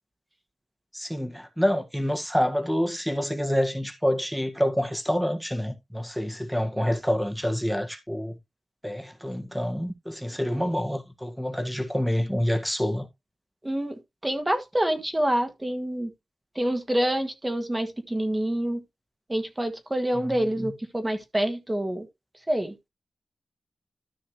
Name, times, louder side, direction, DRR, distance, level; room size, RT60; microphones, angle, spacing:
voice 1, 0.9-8.4 8.8-13.1 20.1-20.7, equal, ahead, 1.6 m, -27 dB
voice 2, 13.6-13.9 14.2-16.1 16.5-18.8 19.3-22.1 22.5-22.7, right 1 dB, 15° right, 1.7 m, -27 dB
13.5 x 5.7 x 3.1 m
wide cardioid pair, 85°, 0 cm